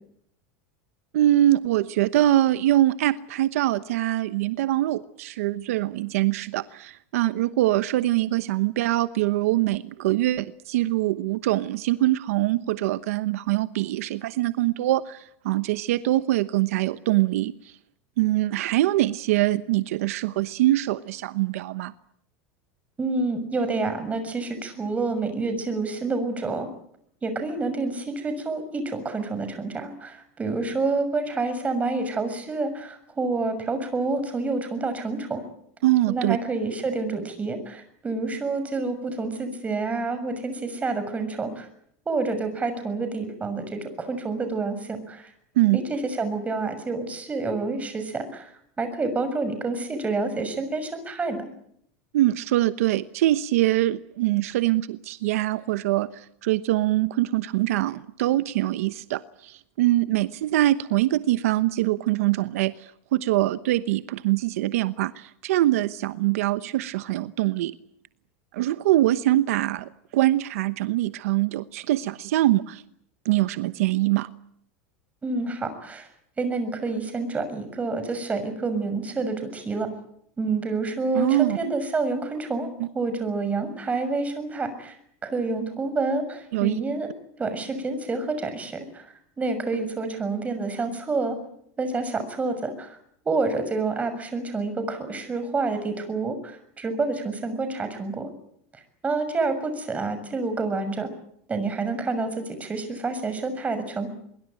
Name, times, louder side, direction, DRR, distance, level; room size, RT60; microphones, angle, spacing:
voice 1, 1.1-17.7 18.2-21.9 35.8-36.4 45.6-45.8 52.1-67.8 68.5-72.8 73.2-74.3 81.1-81.7 82.8-82.9 86.5-86.8, right 15 dB, 80° right, 13 dB, 1.0 m, -23 dB
voice 2, 23.0-26.7 27.2-35.4 36.1-41.7 42.0-45.3 45.7-48.5 48.8-51.5 75.2-76.1 76.4-79.9 80.4-82.7 82.9-85.0 85.2-87.1 87.4-91.4 91.8-93.0 93.2-98.3 99.0-101.1 101.5-104.1, right 3 dB, 20° right, 9 dB, 6.5 m, -28 dB
23.0 x 22.5 x 9.0 m, 0.71 s
supercardioid pair, 125°, 8 cm